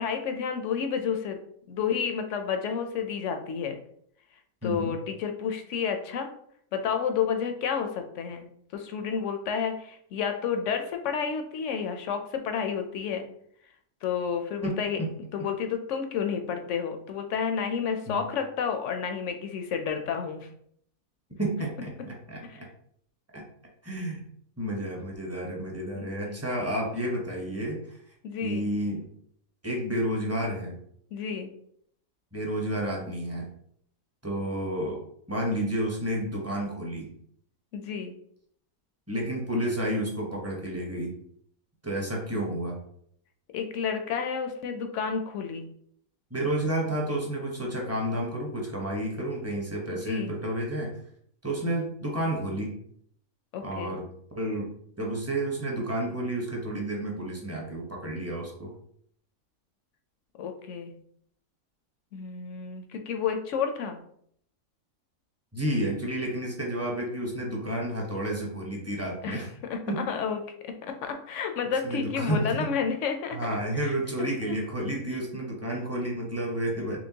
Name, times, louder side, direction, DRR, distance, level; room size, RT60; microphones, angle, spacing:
voice 1, 0.0-1.4 1.7-3.8 4.6-6.3 6.7-13.3 14.0-15.0 15.3-20.5 22.5-22.6 26.0-26.4 28.2-28.7 31.1-31.5 37.7-38.1 43.5-45.7 49.9-50.3 53.5-54.0 60.4-60.9 62.1-64.0 69.2-69.4 69.7-73.5 73.8-74.3, left 6 dB, 70° left, 6 dB, 0.8 m, -31 dB
voice 2, 4.6-5.0 14.6-15.1 18.1-18.2 21.4-22.7 23.3-23.4 23.8-24.2 24.6-28.0 28.4-29.0 29.6-30.8 32.3-33.5 34.2-37.1 39.1-41.2 41.8-42.8 46.3-51.0 51.4-52.8 53.6-54.1 54.4-54.7 55.0-58.7 65.5-69.5 69.9-70.1 71.8-72.7 73.3-77.0, right 1 dB, 15° right, -2 dB, 0.6 m, -31 dB
4.4 x 3.1 x 2.8 m, 0.66 s
omnidirectional pair, 1.5 m